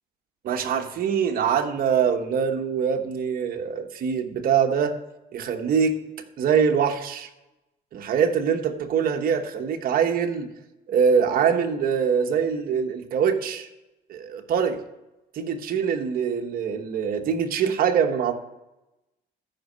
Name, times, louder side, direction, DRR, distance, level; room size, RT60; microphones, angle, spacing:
voice 1, 0.4-4.9 5.3-5.9 6.4-7.3 7.9-10.5 10.9-13.7 14.1-14.8 15.3-18.3, right 7 dB, 60° right, 5 dB, 1.1 m, -23 dB
13.5 x 5.4 x 5.2 m, 0.98 s
cardioid pair, 110°, 17 cm